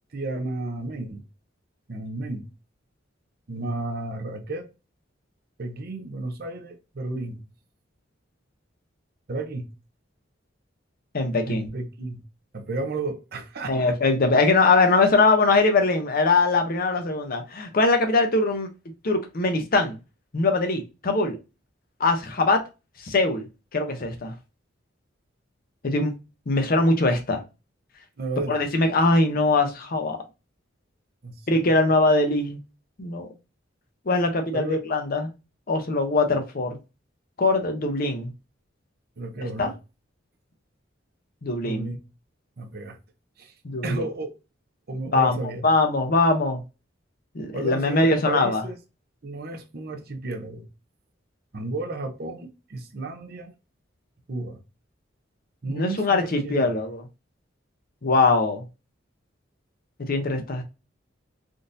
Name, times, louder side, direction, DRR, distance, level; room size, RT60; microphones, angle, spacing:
voice 1, 0.1-1.2 1.9-2.5 3.5-4.7 5.6-7.4 9.3-9.7 11.5-12.2 12.5-13.9 28.2-28.6 31.2-31.4 34.5-34.8 39.2-39.7 41.6-42.0 42.6-43.0 43.4-43.5 43.8-44.3 44.9-45.6 47.5-48.8 49.2-50.7 51.5-53.5 54.3-54.6 55.6-56.7, right 2 dB, 55° right, 0.6 m, -32 dB
voice 2, 11.1-11.7 13.7-18.7 19.0-20.0 20.3-21.4 22.0-22.6 23.0-23.5 23.7-24.3 25.8-26.1 26.5-27.4 28.5-30.2 31.5-32.6 33.0-33.3 34.1-35.3 35.7-36.8 37.4-38.3 39.6-39.7 41.4-41.9 43.6-44.0 45.1-46.6 47.3-48.6 55.7-57.0 58.0-58.6 60.1-60.6, left 3 dB, 50° left, 0.7 m, -22 dB
3.7 x 2.6 x 2.5 m
head